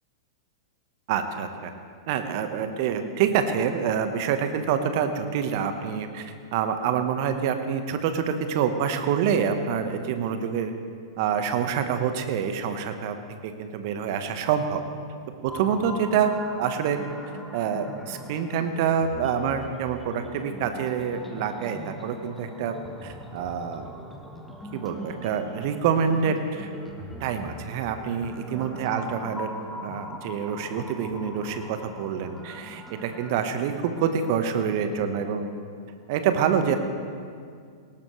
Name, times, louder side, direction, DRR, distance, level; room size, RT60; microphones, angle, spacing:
voice 1, 1.1-1.7 2.1-10.7 11.2-13.2 13.4-14.8 15.4-16.3 16.6-17.0 17.5-22.7 23.0-23.9 24.7-26.7 27.2-29.5 29.8-35.5 36.1-36.8, right 7 dB, 50° right, 8 dB, 1.3 m, -26 dB
sound 1, 15.5-34.3, left 1 dB, 5° left, 1.3 m, -41 dB
18.5 x 17.5 x 3.3 m, 2.2 s
figure-of-eight pair, 100°, 2 cm